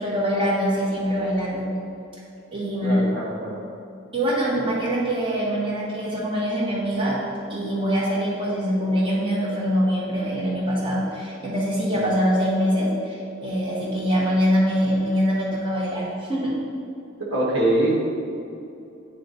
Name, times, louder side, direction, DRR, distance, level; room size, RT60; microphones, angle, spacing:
voice 1, 0.0-1.7 2.5-3.0 4.1-7.2 7.5-16.5, equal, 25° right, -6 dB, 1.2 m, -23 dB
voice 2, 2.8-3.6 11.9-12.1 17.3-18.1, right 1 dB, 75° right, -4 dB, 1.4 m, -23 dB
9.2 x 3.1 x 4.0 m, 2.7 s
head